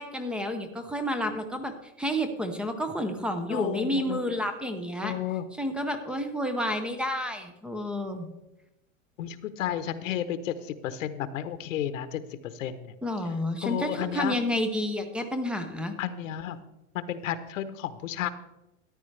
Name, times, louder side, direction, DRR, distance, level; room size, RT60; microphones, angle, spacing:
voice 1, 0.0-5.2 5.6-8.3 13.0-15.9, equal, 5° right, 7 dB, 0.5 m, -30 dB
voice 2, 3.4-4.2 5.0-5.5 9.2-12.9 13.6-14.4 16.0-16.6 16.9-18.3, left 10 dB, 70° left, 12 dB, 0.9 m, -32 dB
13.5 x 10.0 x 3.3 m, 0.94 s
supercardioid pair, 145°, 40 cm